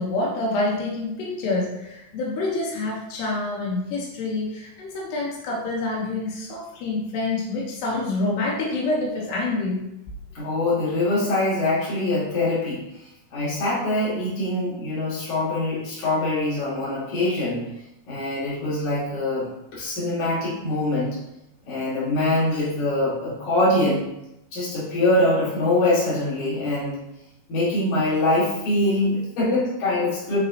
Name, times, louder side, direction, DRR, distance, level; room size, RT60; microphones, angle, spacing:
voice 1, 0.0-9.9, left 2 dB, 90° left, -3 dB, 3.2 m, -27 dB
voice 2, 10.4-12.8 13.3-17.6 18.1-21.2 21.7-24.1 24.5-27.0 27.5-30.4, left 2 dB, 50° left, -9 dB, 3.6 m, -23 dB
8.8 x 4.2 x 2.8 m, 0.87 s
omnidirectional pair, 4.7 m